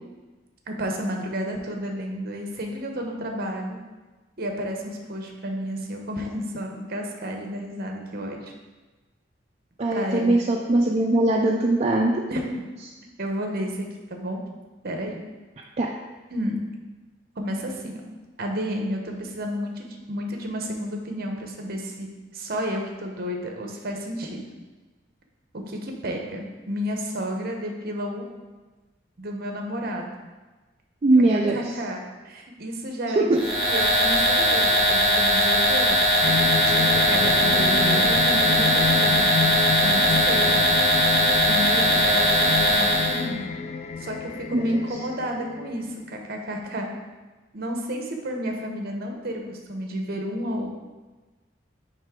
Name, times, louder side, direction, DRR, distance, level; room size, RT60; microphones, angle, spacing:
voice 1, 0.7-3.8 4.4-8.5 9.9-10.3 12.3-12.4 13.2-14.4 14.8-15.2 16.3-16.6 17.4-18.0 18.4-22.1 22.3-24.4 25.5-28.2 29.2-30.1 31.3-36.1 36.7-39.3 39.8-40.6 41.5-43.5 44.0-46.9 47.5-50.7, equal, 55° right, 2 dB, 0.9 m, -31 dB
voice 2, 9.8-12.1 15.8-15.9 31.0-31.6 33.1-33.4 44.5-44.8, right 2 dB, 35° right, -1 dB, 0.4 m, -20 dB
sound 1, 33.4-43.2, equal, ahead, 1.1 m, -20 dB
sound 2, 36.2-46.0, left 5 dB, 35° left, 0.3 m, -29 dB
9.5 x 3.2 x 3.7 m, 1.2 s
head